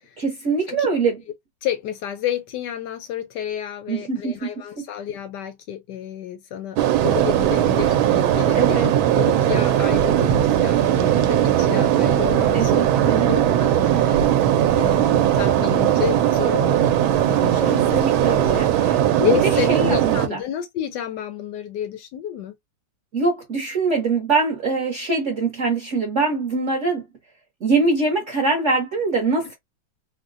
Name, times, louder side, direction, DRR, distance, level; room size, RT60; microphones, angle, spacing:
voice 1, 0.2-1.2 3.9-4.5 8.5-8.9 12.5-13.3 17.7-19.3 19.7-20.4 23.1-27.0 27.6-29.5, right 3 dB, 50° right, 1.0 m, -23 dB
voice 2, 1.6-14.3 14.6-17.0 17.3-18.6 19.2-22.5, left 10 dB, 75° left, 1.0 m, -30 dB
sound 1, 6.8-20.3, right 11 dB, 80° right, 1.4 m, -19 dB
3.9 x 2.1 x 2.4 m
omnidirectional pair, 2.3 m